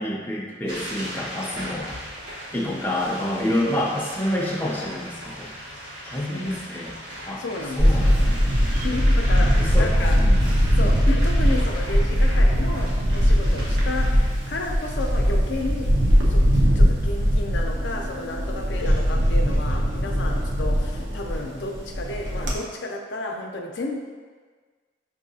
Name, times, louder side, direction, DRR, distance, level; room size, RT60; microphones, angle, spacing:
voice 1, 0.0-1.9 2.5-5.5 6.0-6.9 7.3-7.4 7.8-8.8 9.6-9.9 10.2-10.6, left 1 dB, 10° left, -3 dB, 0.4 m, -28 dB
sound 1, 0.7-16.6, equal, 65° right, 1.4 m, -38 dB
voice 2, 7.4-8.3 8.8-10.2 10.7-14.1 14.5-15.9 16.3-16.4 16.7-23.9, left 2 dB, 80° left, 1 dB, 0.5 m, -32 dB
Camera, 7.8-22.5, equal, 90° right, 0.7 m, -20 dB
5.3 x 2.7 x 2.7 m, 1.5 s
head